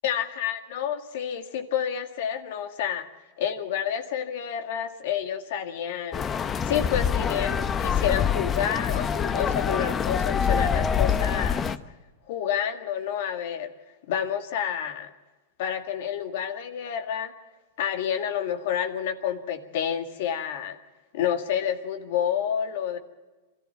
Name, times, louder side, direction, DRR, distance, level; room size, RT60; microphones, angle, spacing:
voice 1, 0.0-3.1 3.4-11.7 12.3-13.7 14.1-15.1 15.6-17.3 17.8-20.8 21.1-23.0, left 9 dB, 65° left, 7 dB, 1.9 m, -29 dB
sound 1, 6.1-11.8, left 7 dB, 25° left, 0.8 m, -25 dB
24.0 x 14.0 x 8.2 m, 1.2 s
hypercardioid pair, 115°, 0 cm